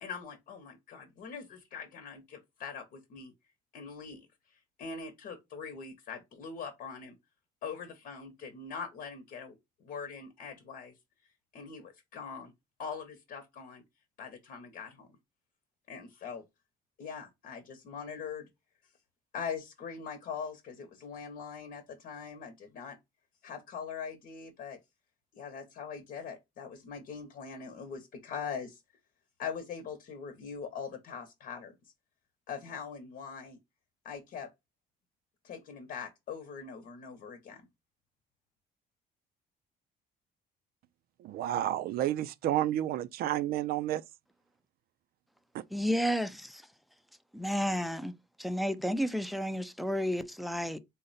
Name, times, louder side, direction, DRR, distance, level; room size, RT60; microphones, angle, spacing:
voice 1, 0.0-3.3 3.7-7.2 7.6-11.0 11.2-12.5 12.8-13.8 14.2-15.2 15.9-16.4 17.0-18.5 19.3-23.0 23.4-24.8 25.3-28.8 29.4-31.7 32.5-33.6 34.0-34.5 35.4-37.6, left 6 dB, 60° left, 0.9 m, -42 dB
voice 2, 41.2-44.0 45.5-45.6, right 12 dB, 65° right, 0.4 m, -30 dB
voice 3, 45.7-46.6 47.3-48.1 48.4-50.8, equal, ahead, 0.4 m, -31 dB
3.8 x 2.1 x 3.9 m
cardioid pair, 110°, 17 cm